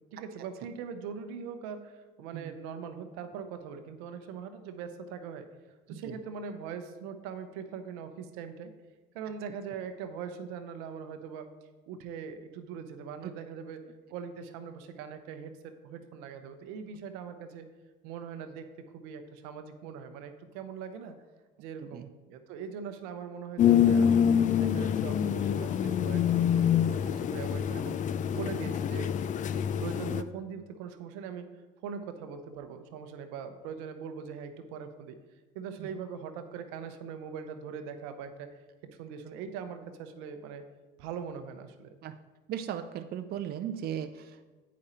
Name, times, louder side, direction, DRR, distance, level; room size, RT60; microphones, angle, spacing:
voice 1, 0.1-5.5 5.9-8.7 9.1-11.5 11.9-13.8 14.1-17.7 18.0-18.7 18.9-21.2 21.6-24.3 24.6-29.1 29.8-31.5 31.8-35.2 35.5-38.5 39.0-40.6 41.0-41.9, right 6 dB, 80° right, 8 dB, 0.7 m, -41 dB
sound 1, 23.6-30.2, left 8 dB, 40° left, 0.4 m, -26 dB
voice 2, 42.5-44.4, right 9 dB, 50° right, 7 dB, 0.5 m, -37 dB
8.5 x 5.0 x 4.2 m, 1.2 s
supercardioid pair, 85°, 21 cm